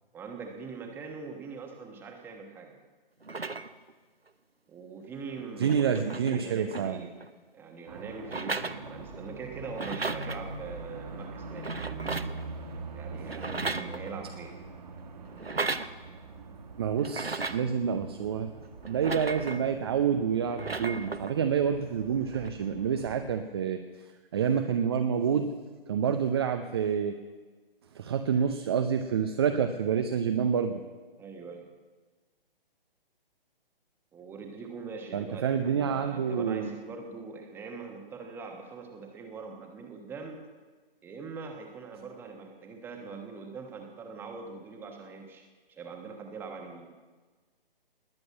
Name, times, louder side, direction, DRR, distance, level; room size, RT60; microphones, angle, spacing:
voice 1, 0.1-2.8 4.7-7.2 7.5-11.7 12.9-14.6 31.2-31.7 34.1-40.4 41.0-46.9, right 4 dB, 5° right, 3 dB, 1.2 m, -42 dB
sound 1, 3.2-3.9 5.0-5.1 5.4-7.3 8.2-9.3 9.6-10.4 11.5-12.5 13.2-14.3 15.3-15.9 17.0-17.7 18.8-19.7 20.4-21.3 22.3-22.5, right 3 dB, 90° right, 0.9 m, -35 dB
voice 2, 5.6-7.0 16.8-18.5 18.9-23.8 24.3-25.5 25.9-27.1 27.9-30.8 35.1-36.7, right 7 dB, 25° right, 7 dB, 0.6 m, -28 dB
sound 2, 7.9-23.3, right 3 dB, 45° right, 1.8 m, -43 dB
20.0 x 7.8 x 8.7 m, 1.4 s
figure-of-eight pair, 135°, 29 cm